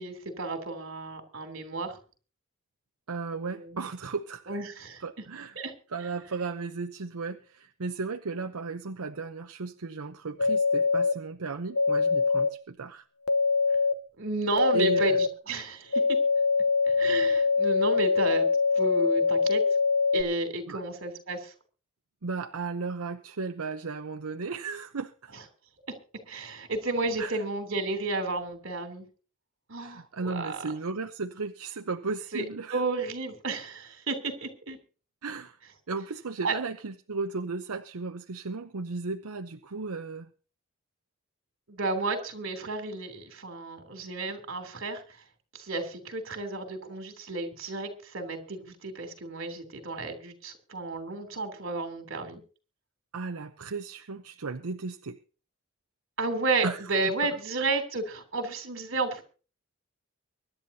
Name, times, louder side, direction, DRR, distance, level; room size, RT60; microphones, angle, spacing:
voice 1, 0.0-2.0 3.3-3.8 4.5-5.0 5.5-5.7 14.2-16.2 16.9-19.6 20.1-21.5 26.3-29.0 29.7-30.6 32.3-32.4 32.7-34.8 36.4-36.5 41.7-45.0 45.5-52.4 56.2-59.2, right 3 dB, 60° right, 6 dB, 3.2 m, -32 dB
voice 2, 3.1-4.6 5.0-5.6 5.9-13.0 14.7-15.2 20.7-20.8 22.2-25.3 27.2-27.4 29.8-32.8 35.2-35.6 35.9-40.3 53.1-55.2 56.6-56.9, right 4 dB, 85° right, 6 dB, 0.8 m, -35 dB
sound 1, 10.4-11.1 11.7-12.5 13.3-13.9 14.6-15.3 15.9-20.2, left 4 dB, 90° left, 1.0 m, -24 dB
24.0 x 11.0 x 2.8 m, 0.38 s
head